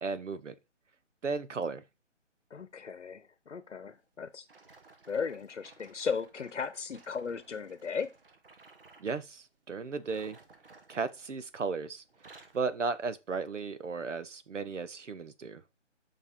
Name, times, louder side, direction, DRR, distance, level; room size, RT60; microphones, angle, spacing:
voice 1, 0.0-0.5 1.2-1.8 9.0-10.4 10.9-12.0 12.5-15.6, right 4 dB, 75° right, 1.1 m, -35 dB
voice 2, 2.5-4.4 5.1-8.1, left 6 dB, 70° left, 0.9 m, -36 dB
sound 1, 4.5-9.1 9.9-11.7 12.0-12.7 13.3-13.5 14.1-14.2, right 3 dB, 45° right, 1.2 m, -57 dB
6.6 x 5.6 x 3.7 m
hypercardioid pair, 170°, 37 cm